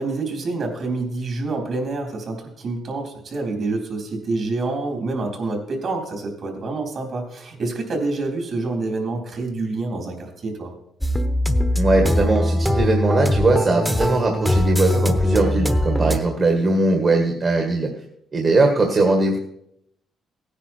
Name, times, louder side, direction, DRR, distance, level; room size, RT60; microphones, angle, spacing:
voice 1, 0.0-10.7 16.0-16.2, right 3 dB, 55° right, 2 dB, 3.8 m, -27 dB
sound 1, 11.0-16.2, left 1 dB, ahead, 1.0 m, -21 dB
voice 2, 11.7-17.9 18.3-19.4, right 2 dB, 40° right, 2 dB, 1.8 m, -20 dB
16.5 x 9.8 x 4.6 m, 0.78 s
cardioid pair, 90°, 0 cm